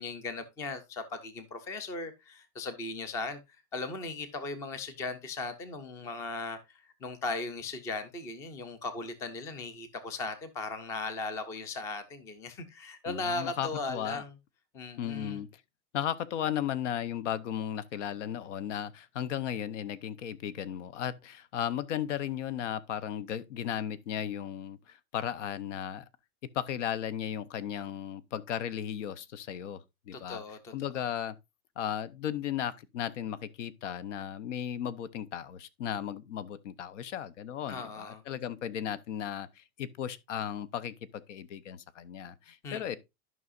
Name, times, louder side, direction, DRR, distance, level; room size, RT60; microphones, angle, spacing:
voice 1, 0.0-3.4 3.7-14.3 14.7-15.4 30.1-30.7 37.7-38.2 42.6-43.0, left 3 dB, 10° left, 0.3 m, -38 dB
voice 2, 13.1-14.2 15.0-15.5 15.9-26.0 26.4-30.4 30.7-31.4 31.8-43.0, left 10 dB, 85° left, 0.8 m, -35 dB
12.5 x 5.5 x 2.4 m
supercardioid pair, 160°, 35 cm